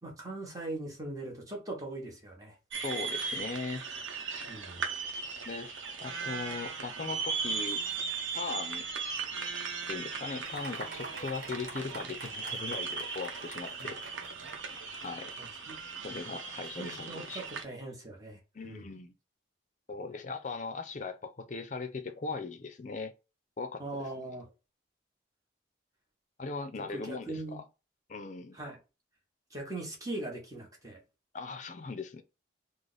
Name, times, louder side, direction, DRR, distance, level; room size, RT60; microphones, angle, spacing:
voice 1, 0.0-2.6 4.5-4.8 13.8-13.9 15.4-15.8 16.8-18.9 23.8-24.5 26.9-27.6 28.5-28.8 29.5-31.0, right 2 dB, 20° right, 1.0 m, -40 dB
sound 1, 2.7-17.6, right 5 dB, 90° right, 0.7 m, -38 dB
voice 2, 2.8-3.9 5.5-7.8 8.3-8.8 9.9-14.0 15.0-15.3 16.0-17.4 18.5-19.1 19.9-23.1 23.6-24.1 26.4-27.6 28.1-28.6 31.3-32.2, left 4 dB, 40° left, 0.4 m, -39 dB
Fireworks, 10.4-16.2, right 3 dB, 50° right, 1.2 m, -46 dB
3.3 x 2.0 x 3.9 m
head